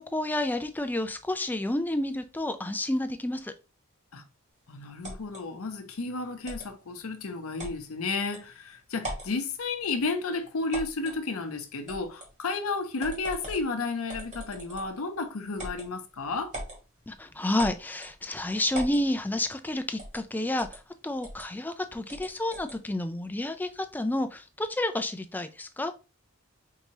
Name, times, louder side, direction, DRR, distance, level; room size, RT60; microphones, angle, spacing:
voice 1, 0.0-3.5 17.1-26.0, left 1 dB, 10° left, 0.4 m, -30 dB
voice 2, 4.7-16.5, left 3 dB, 75° left, 0.7 m, -32 dB
sound 1, 5.0-5.4 6.4-6.7 7.6-7.8 8.3-8.4 9.0-9.3 10.7-11.2 11.9-12.3 13.0-13.7 14.1-15.0 15.6-15.9 16.5-16.8 17.6-18.2 18.7-19.0 20.0-20.2 20.6-20.8 21.2-21.5 22.1-22.8, right 1 dB, 35° right, 1.7 m, -39 dB
4.6 x 2.7 x 2.9 m
head